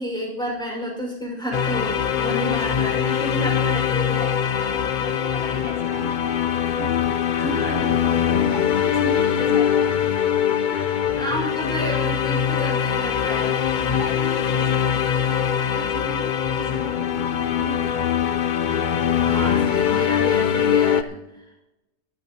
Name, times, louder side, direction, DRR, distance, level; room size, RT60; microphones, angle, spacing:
voice 1, 0.0-4.3 7.3-8.0 10.7-13.6 19.2-21.4, equal, 5° left, -1 dB, 5.3 m, -30 dB
sound 1, 1.5-21.0, left 8 dB, 50° left, 0.6 m, -22 dB
voice 2, 2.1-3.3 4.5-7.1 7.5-9.9 10.7-10.9 13.8-18.3, right 2 dB, 65° right, -5 dB, 3.8 m, -38 dB
23.0 x 12.0 x 3.0 m, 0.92 s
omnidirectional pair, 1.4 m